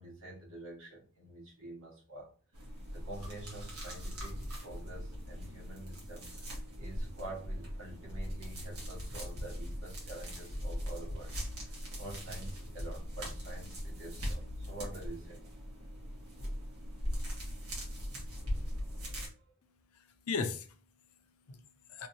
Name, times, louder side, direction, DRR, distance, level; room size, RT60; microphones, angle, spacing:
voice 1, 0.0-2.6 2.9-15.5 19.1-19.3, right 1 dB, 60° right, 1.5 m, -47 dB
sound 1, 2.5-19.3, equal, 75° right, 1.5 m, -40 dB
voice 2, 19.6-22.1, left 4 dB, 70° left, 0.5 m, -40 dB
3.4 x 3.1 x 2.7 m
head